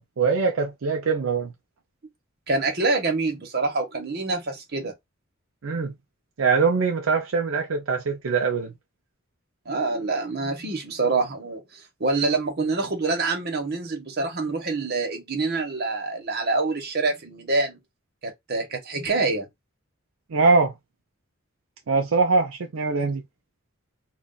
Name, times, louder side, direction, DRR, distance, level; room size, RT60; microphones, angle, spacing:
voice 1, 0.0-1.5 5.6-5.9 6.4-8.7 20.3-20.7 21.9-23.2, right 4 dB, 75° right, 0.5 m, -22 dB
voice 2, 2.5-4.9 9.7-17.8 18.2-19.5 23.0-23.1, right 3 dB, 50° right, 1.0 m, -26 dB
2.3 x 2.3 x 3.7 m
head